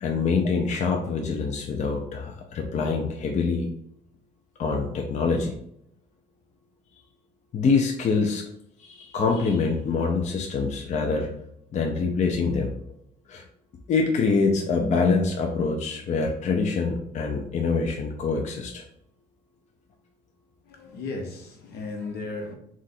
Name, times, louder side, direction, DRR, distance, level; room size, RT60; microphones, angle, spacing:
voice 1, 0.0-3.7 4.6-5.6 7.5-8.4 8.8-11.3 11.7-12.7 13.3-13.4 13.9-18.8, left 4 dB, 45° left, 0.6 m, -25 dB
voice 2, 20.7-22.5, left 3 dB, 70° left, 0.9 m, -35 dB
3.8 x 2.5 x 4.1 m
cardioid pair, 110°, 17 cm